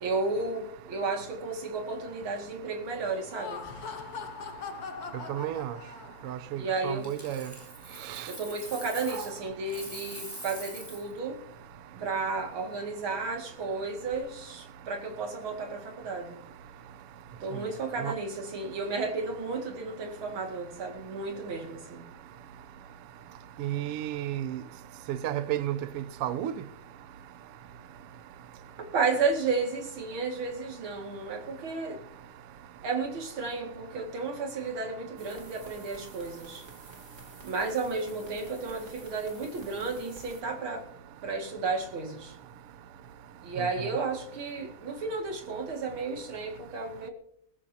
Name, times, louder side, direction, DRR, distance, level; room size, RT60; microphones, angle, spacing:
voice 1, 0.0-3.6 6.6-7.1 8.3-11.4 12.0-16.4 17.4-22.0 28.8-32.0 32.8-36.6 37.4-40.9 41.2-42.3 43.4-47.1, right 4 dB, 45° right, 2.7 m, -33 dB
Laughter, 3.2-6.4, left 5 dB, 75° left, 0.8 m, -41 dB
voice 2, 5.3-5.7 6.2-7.5 8.1-8.3 9.1-9.2 18.0-18.1 23.6-24.6 25.1-26.5 43.6-43.7, right 12 dB, 90° right, 1.3 m, -32 dB
Coin (dropping), 7.0-9.4 9.7-11.1 13.9-14.2, equal, 5° right, 3.8 m, -44 dB
sound 1, 35.2-40.4, right 2 dB, 25° right, 2.7 m, -51 dB
21.5 x 14.5 x 2.8 m
omnidirectional pair, 3.5 m